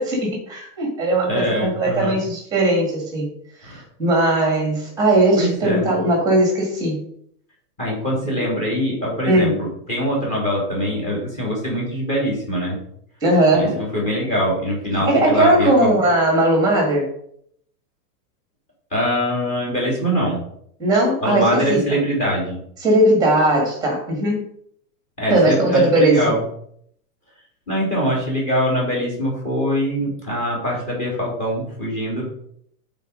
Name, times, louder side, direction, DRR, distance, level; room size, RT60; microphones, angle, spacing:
voice 1, 0.0-3.3 3.6-7.1 9.2-9.6 13.2-13.8 15.0-17.1 20.8-21.8 22.8-24.4 25.3-26.2, right 1 dB, 10° right, 1 dB, 1.7 m, -18 dB
voice 2, 1.2-2.2 3.6-3.8 5.4-5.9 7.8-12.8 13.5-15.9 18.9-20.4 21.2-22.6 25.2-26.4 27.7-32.2, equal, 15° left, -3 dB, 2.9 m, -23 dB
9.0 x 4.2 x 5.0 m, 0.68 s
supercardioid pair, 175°, 47 cm